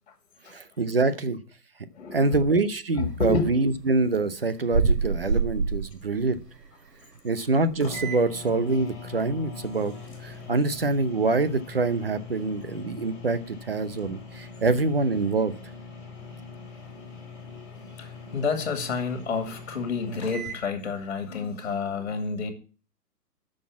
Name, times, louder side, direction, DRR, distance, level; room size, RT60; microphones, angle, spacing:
voice 1, 0.5-1.4 2.1-6.4 7.2-9.9 10.2-15.5, right 3 dB, 35° right, 0.7 m, -25 dB
voice 2, 1.9-2.4 3.0-3.5 14.0-14.1 14.6-14.7 16.1-16.2 18.0-22.5, left 4 dB, 45° left, 2.1 m, -29 dB
sound 1, 3.1-8.3 8.7-8.8 9.1-10.5, right 4 dB, 85° right, 3.2 m, -28 dB
sound 2, 7.4-7.5 7.8-20.6, left 2 dB, 20° left, 2.4 m, -41 dB
9.8 x 6.4 x 7.1 m
hypercardioid pair, 180°, 48 cm